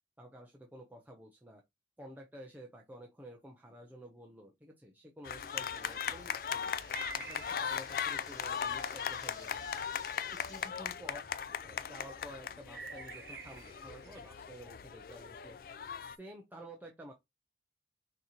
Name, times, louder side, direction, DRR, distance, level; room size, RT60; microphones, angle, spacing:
voice 1, 0.2-1.6 2.0-6.8 7.1-9.7 10.3-15.6 16.2-17.1, equal, 10° right, 0.6 m, -51 dB
sound 1, 5.2-16.2, left 7 dB, 55° left, 0.3 m, -39 dB
sound 2, 5.4-10.7, left 2 dB, 20° left, 1.4 m, -56 dB
sound 3, 6.7-14.3, right 5 dB, 65° right, 1.1 m, -51 dB
6.2 x 2.9 x 2.8 m
head